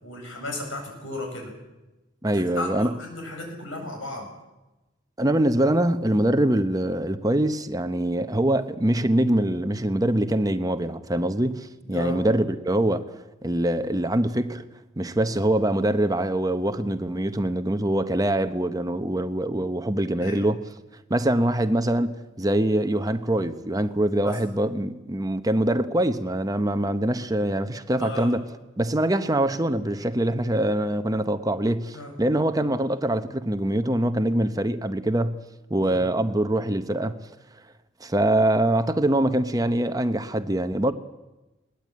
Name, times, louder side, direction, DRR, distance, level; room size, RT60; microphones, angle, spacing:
voice 1, 0.0-1.5 2.3-4.3 11.9-12.2 20.2-20.4 24.2-24.4 28.0-28.3 31.9-32.1 35.8-36.1, left 1 dB, 85° left, 7.9 m, -35 dB
voice 2, 2.2-2.9 5.2-13.0 13.4-14.6 15.0-20.6 21.1-28.4 28.8-35.4 35.7-37.2 38.0-40.9, right 1 dB, 20° right, 0.9 m, -24 dB
21.5 x 19.0 x 8.6 m
head